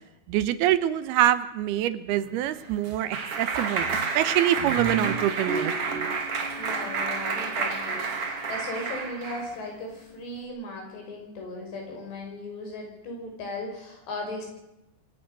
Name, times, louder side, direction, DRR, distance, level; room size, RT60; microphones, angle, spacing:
voice 1, 0.3-5.7, right 12 dB, 80° right, 14 dB, 2.8 m, -25 dB
Clapping, 2.3-9.5, right 4 dB, 40° right, 2.8 m, -29 dB
voice 2, 6.6-14.5, left 2 dB, 85° left, 2 dB, 7.9 m, -37 dB
24.5 x 17.0 x 6.7 m, 0.89 s
omnidirectional pair, 4.8 m